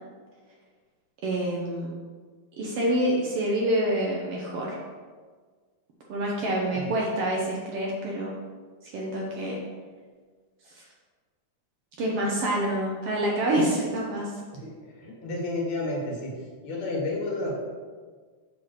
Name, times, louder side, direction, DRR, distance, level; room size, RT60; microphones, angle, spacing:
voice 1, 1.2-1.9 2.6-4.8 6.1-8.3 8.8-9.6 10.7-10.8 12.0-14.3, right 1 dB, 60° right, -3 dB, 1.7 m, -27 dB
voice 2, 14.6-16.3 16.6-17.6, left 2 dB, 65° left, -3 dB, 3.0 m, -31 dB
7.4 x 4.0 x 6.3 m, 1.5 s
omnidirectional pair, 3.4 m